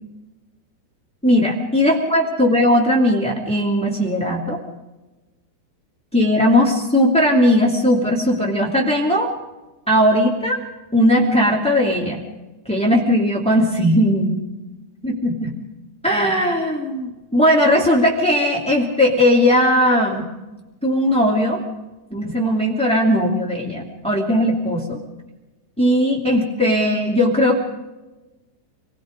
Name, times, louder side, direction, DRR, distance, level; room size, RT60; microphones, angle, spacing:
voice 1, 1.2-4.6 6.1-9.3 9.9-10.6 10.9-12.2 12.6-14.4 15.0-15.5 16.0-20.2 20.8-21.6 22.1-25.0 25.8-27.6, equal, 5° left, -1 dB, 0.6 m, -18 dB
28.5 x 18.5 x 5.2 m, 1.1 s
omnidirectional pair, 5.5 m